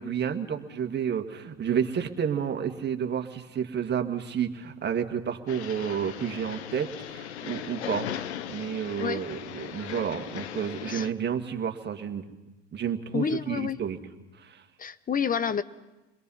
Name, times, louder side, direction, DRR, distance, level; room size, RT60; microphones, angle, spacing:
voice 1, 0.0-12.2 12.7-14.0 14.3-14.6, right 8 dB, 30° right, 5 dB, 2.0 m, -31 dB
sound 1, 5.5-11.1, left 10 dB, 90° left, 0.9 m, -38 dB
voice 2, 13.1-13.8 14.8-15.6, left 7 dB, 25° left, 16 dB, 0.9 m, -28 dB
28.5 x 22.0 x 5.7 m, 1.1 s
hypercardioid pair, 85°, 33 cm